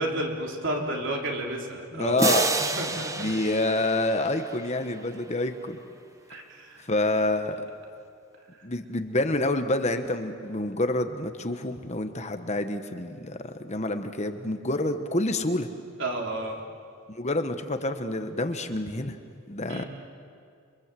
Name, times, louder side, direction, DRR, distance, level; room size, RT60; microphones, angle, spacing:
voice 1, 0.0-2.3 2.8-3.2 6.3-6.8 16.0-16.6 19.7-19.9, right 1 dB, 55° right, 0 dB, 3.8 m, -31 dB
voice 2, 1.9-2.5 3.2-5.8 6.3-6.4 6.9-7.7 8.6-15.7 17.1-19.2 19.5-19.8, left 2 dB, 30° left, 7 dB, 1.2 m, -28 dB
sound 1, 2.2-5.0, right 3 dB, 15° right, 0.9 m, -29 dB
29.5 x 25.0 x 7.6 m, 2.3 s
head